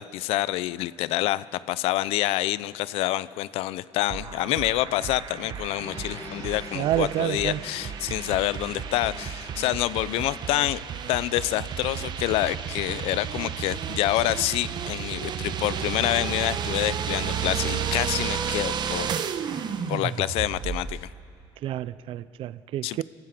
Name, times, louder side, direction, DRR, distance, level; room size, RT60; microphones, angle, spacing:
voice 1, 0.0-10.8 11.1-19.1 19.9-21.1 22.8-23.0, left 16 dB, 80° left, 0.6 m, -27 dB
sound 1, 4.1-21.0, right 8 dB, 50° right, 1.0 m, -32 dB
sound 2, 5.8-10.7, left 3 dB, 30° left, 3.2 m, -45 dB
voice 2, 6.7-7.6 21.6-23.0, right 13 dB, 65° right, 0.5 m, -28 dB
30.0 x 15.5 x 6.0 m
cardioid pair, 110°, 10 cm